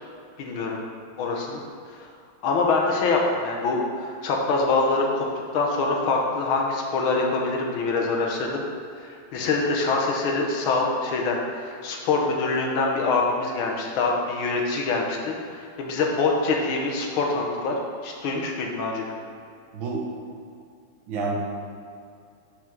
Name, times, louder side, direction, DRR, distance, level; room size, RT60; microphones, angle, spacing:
voice 1, 0.4-0.8 1.2-1.6 2.4-5.3 5.5-8.6 9.0-17.7 18.0-19.2, left 3 dB, 75° left, 0 dB, 1.8 m, -25 dB
voice 2, 19.7-20.1 21.1-21.4, right 3 dB, 70° right, -2 dB, 1.8 m, -28 dB
6.1 x 5.0 x 6.1 m, 2.4 s
omnidirectional pair, 2.3 m